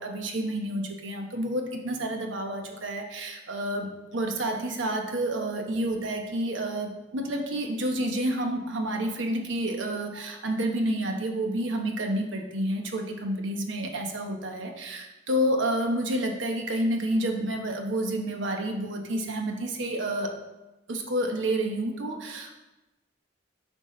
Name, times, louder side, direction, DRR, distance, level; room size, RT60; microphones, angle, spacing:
voice 1, 0.0-20.3 20.9-22.5, right 1 dB, 85° right, 3 dB, 1.0 m, -29 dB
9.6 x 5.5 x 3.2 m, 1.0 s
head